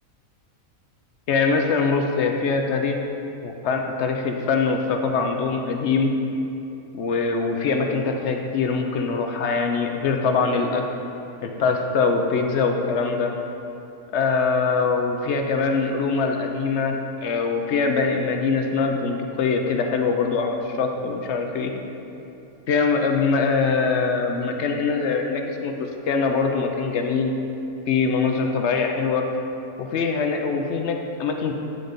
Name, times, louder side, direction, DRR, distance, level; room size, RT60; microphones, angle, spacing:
voice 1, 1.3-3.0 3.4-6.1 6.9-10.8 11.4-13.3 14.1-21.7 22.7-25.7 26.0-27.3 27.9-29.2 29.8-31.5, left 4 dB, 65° left, 3 dB, 0.7 m, -23 dB
9.3 x 3.9 x 5.2 m, 2.9 s
omnidirectional pair, 1.5 m